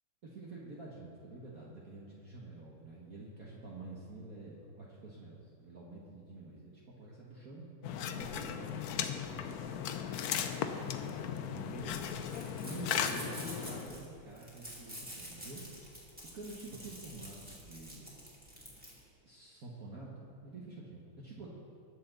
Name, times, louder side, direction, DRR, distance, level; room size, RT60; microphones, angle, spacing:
voice 1, 0.2-7.7 8.2-8.9 9.3-9.7 10.7-12.3 12.6-15.8 16.3-18.2 19.2-21.5, right 2 dB, 45° right, -5 dB, 1.7 m, -48 dB
sound 1, 7.8-14.0, left 8 dB, 70° left, 0.9 m, -37 dB
sound 2, 8.2-19.0, equal, 5° right, 2.4 m, -50 dB
21.0 x 7.0 x 3.9 m, 2.5 s
omnidirectional pair, 2.2 m